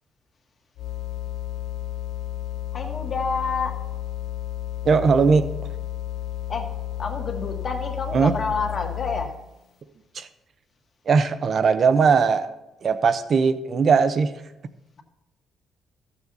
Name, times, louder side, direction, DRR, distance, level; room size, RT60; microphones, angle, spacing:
sound 1, 0.8-9.5, left 12 dB, 80° left, 0.4 m, -32 dB
voice 1, 2.7-3.9 6.5-9.4, left 4 dB, 45° left, 2 dB, 1.6 m, -29 dB
voice 2, 4.8-5.5 8.1-8.3 10.1-10.3 11.1-12.5 12.8-14.3, right 5 dB, 50° right, 11 dB, 0.8 m, -19 dB
13.5 x 7.3 x 4.0 m, 0.93 s
cardioid pair, 90°, 0 cm